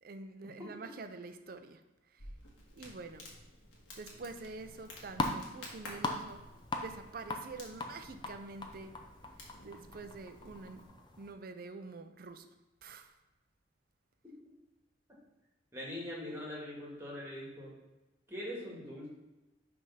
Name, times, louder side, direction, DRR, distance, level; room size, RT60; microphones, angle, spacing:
voice 1, 0.0-1.8 2.1-2.2 2.8-3.3 4.0-6.4 6.8-9.0 9.6-10.8 11.2-12.5 12.8-13.1, right 3 dB, 50° right, 8 dB, 0.5 m, -46 dB
Crackle, 2.2-10.9, left 1 dB, 70° left, 1.6 m, -53 dB
sound 1, 4.6-11.3, left 2 dB, 20° left, 0.5 m, -41 dB
voice 2, 15.7-17.7 18.3-19.1, left 1 dB, 15° right, -5 dB, 1.7 m, -42 dB
6.3 x 3.5 x 5.6 m, 1.1 s
head